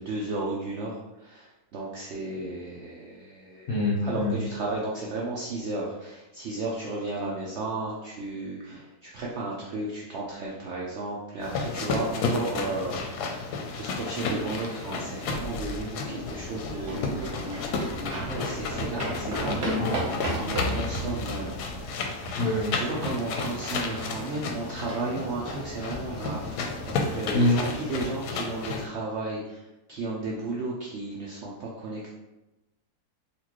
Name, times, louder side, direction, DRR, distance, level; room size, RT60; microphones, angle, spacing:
voice 1, 0.0-3.7 4.0-32.1, right 2 dB, 70° right, -4 dB, 0.6 m, -34 dB
voice 2, 3.7-4.3 19.4-20.0 22.4-22.7 27.3-27.5, left 2 dB, 50° left, -9 dB, 0.9 m, -25 dB
sound 1, 11.4-28.9, left 3 dB, 90° left, 1.1 m, -33 dB
sound 2, 15.3-19.8 20.1-20.9 21.3-21.4 21.6-21.8, equal, 70° left, 1.5 m, -42 dB
sound 3, 16.3-28.0, equal, 50° right, 1.0 m, -36 dB
4.2 x 2.5 x 2.9 m, 1.0 s
omnidirectional pair, 1.7 m